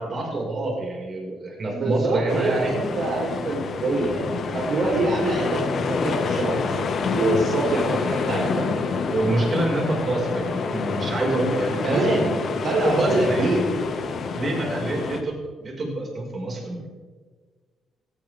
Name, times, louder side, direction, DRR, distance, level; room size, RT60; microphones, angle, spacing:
voice 1, 0.0-2.7 4.8-5.0 7.6-7.7 9.1-12.2 12.8-13.5 14.3-16.9, right 2 dB, 40° right, -1 dB, 5.5 m, -27 dB
voice 2, 1.7-5.7 6.0-8.9 11.8-12.3 12.6-13.6, right 2 dB, 65° right, -3 dB, 4.0 m, -25 dB
sound 1, 2.3-15.2, left 4 dB, 55° left, 1.7 m, -27 dB
17.0 x 16.5 x 3.6 m, 1.4 s
cardioid pair, 90°, 0 cm